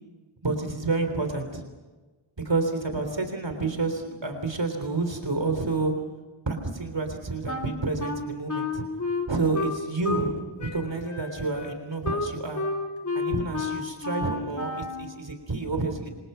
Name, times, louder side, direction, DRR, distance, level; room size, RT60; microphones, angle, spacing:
voice 1, 0.4-1.6 2.4-5.9 6.5-8.8 9.3-12.6 13.2-16.1, right 3 dB, 60° right, 6 dB, 3.6 m, -29 dB
Wind instrument woodwind instrument, 7.5-10.3 10.6-15.1, left 2 dB, 35° left, 3.9 m, -31 dB
27.5 x 26.5 x 5.7 m, 1.2 s
wide cardioid pair, 60°, 48 cm